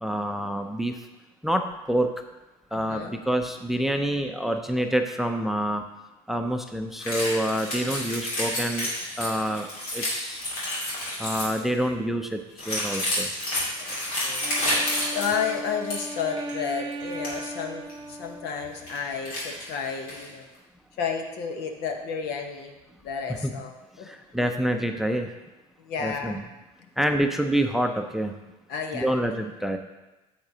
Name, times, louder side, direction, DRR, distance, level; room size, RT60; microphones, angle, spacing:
voice 1, 0.0-1.0 1.4-2.1 2.7-5.8 6.3-8.9 9.2-9.7 9.9-10.4 11.2-13.3 23.4-23.5 24.0-25.3 26.0-26.4 27.0-28.4 28.9-29.8, right 1 dB, ahead, 6 dB, 0.6 m, -27 dB
voice 2, 2.7-3.2 13.8-14.5 15.1-17.8 18.1-20.5 21.0-22.7 23.0-23.7 24.0-24.1 25.8-26.4 28.7-29.1, left 6 dB, 65° left, 4 dB, 1.1 m, -31 dB
sound 1, 7.0-11.6 12.6-16.1 16.4-16.5 16.9-17.3 17.9-18.0 18.6-19.0 19.2-20.3, left 1 dB, 90° left, 2.6 m, -30 dB
Wind instrument woodwind instrument, 14.4-19.1, right 1 dB, 25° right, 0.9 m, -37 dB
8.6 x 8.0 x 2.8 m, 1.1 s
hypercardioid pair, 75°, 18 cm